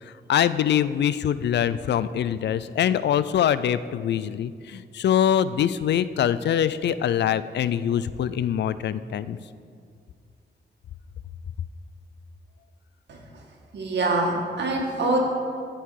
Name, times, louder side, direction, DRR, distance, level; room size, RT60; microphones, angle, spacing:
voice 1, 0.0-9.4, left 9 dB, 75° left, 15 dB, 0.4 m, -24 dB
voice 2, 13.1-13.4 13.7-15.2, right 2 dB, 70° right, 0 dB, 2.0 m, -25 dB
15.5 x 5.6 x 4.8 m, 2.2 s
wide cardioid pair, 130°, 18 cm